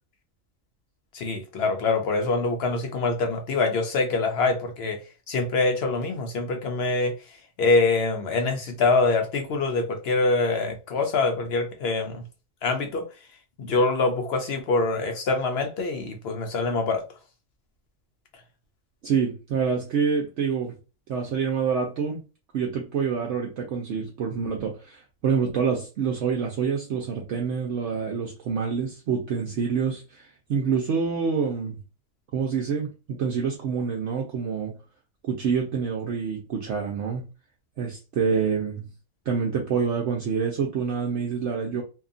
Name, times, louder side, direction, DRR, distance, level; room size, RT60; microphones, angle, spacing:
voice 1, 1.1-5.0 5.3-7.1 7.6-12.2 12.6-13.0 13.6-17.0, left 3 dB, 60° left, 0.7 m, -24 dB
voice 2, 19.0-20.7 21.1-22.2 22.5-31.8 32.3-34.7 35.3-37.2 37.8-38.8 39.3-41.8, right 6 dB, 65° right, 0.8 m, -27 dB
2.8 x 2.3 x 2.5 m
omnidirectional pair, 1.5 m